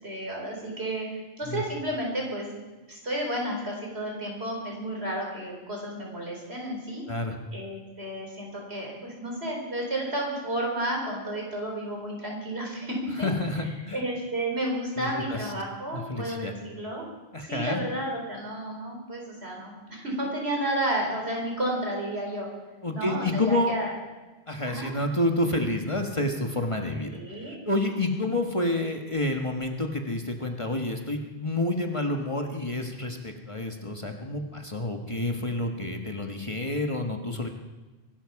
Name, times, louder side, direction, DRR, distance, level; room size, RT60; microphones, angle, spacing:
voice 1, 0.0-2.6 2.9-7.0 7.5-13.3 13.9-17.1 17.5-22.5 22.9-23.9 24.7-24.9 27.0-27.6, right 1 dB, 75° right, -1 dB, 4.7 m, -32 dB
voice 2, 13.2-14.0 15.0-15.5 15.9-16.5 17.3-17.8 22.8-23.7 24.5-27.1 27.4-37.5, left 1 dB, 30° left, 3 dB, 1.4 m, -29 dB
24.0 x 12.5 x 4.8 m, 1.2 s
omnidirectional pair, 1.1 m